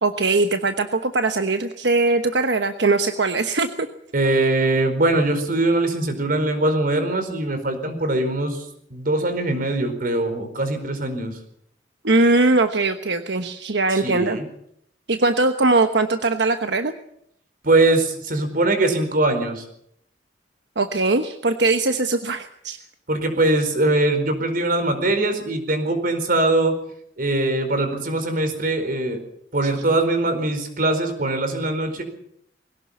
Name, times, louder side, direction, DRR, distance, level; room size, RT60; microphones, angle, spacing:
voice 1, 0.0-3.9 12.0-14.4 15.1-16.9 20.8-22.8, right 3 dB, 85° right, 7 dB, 1.2 m, -20 dB
voice 2, 4.1-8.6 8.9-11.4 13.9-14.5 17.6-19.6 23.1-26.7 27.2-29.2 29.5-32.0, right 2 dB, 55° right, 8 dB, 4.6 m, -22 dB
21.5 x 18.0 x 7.3 m, 0.72 s
head